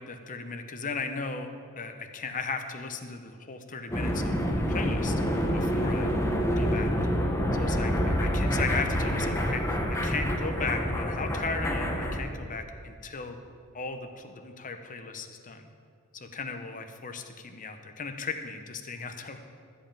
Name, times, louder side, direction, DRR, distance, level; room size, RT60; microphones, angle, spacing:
voice 1, 0.0-4.4 4.7-5.2 5.5-6.2 6.6-6.9 7.6-13.4 13.7-15.7 16.1-19.4, left 4 dB, 40° left, 7 dB, 0.9 m, -36 dB
sound 1, 3.9-12.2, equal, 15° left, 1.1 m, -27 dB
13.0 x 5.5 x 8.7 m, 2.3 s
head